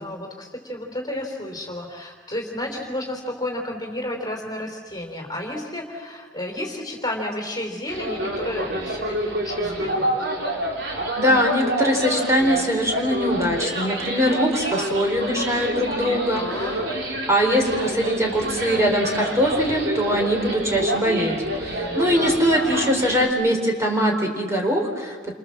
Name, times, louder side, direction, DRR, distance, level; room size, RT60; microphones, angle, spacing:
voice 1, 0.0-10.1 16.3-16.7 21.7-22.2, left 1 dB, 20° left, 1 dB, 3.6 m, -32 dB
sound 1, 7.9-23.3, right 1 dB, 65° right, 4.5 m, -28 dB
voice 2, 11.2-16.4 17.3-25.3, equal, 15° right, 1 dB, 4.3 m, -22 dB
29.0 x 26.0 x 7.5 m, 1.5 s
head